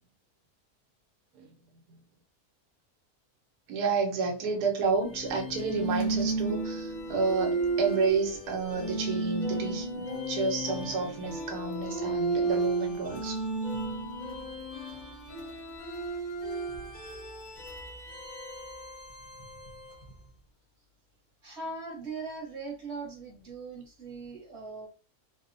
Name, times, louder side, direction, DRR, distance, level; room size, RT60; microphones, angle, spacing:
voice 1, 3.7-13.4, right 4 dB, 80° right, 1.2 m, -30 dB
sound 1, 5.0-20.1, right 3 dB, 45° left, 0.6 m, -33 dB
voice 2, 21.4-24.9, right 3 dB, 50° right, 1.2 m, -40 dB
3.0 x 2.0 x 2.5 m
omnidirectional pair, 1.7 m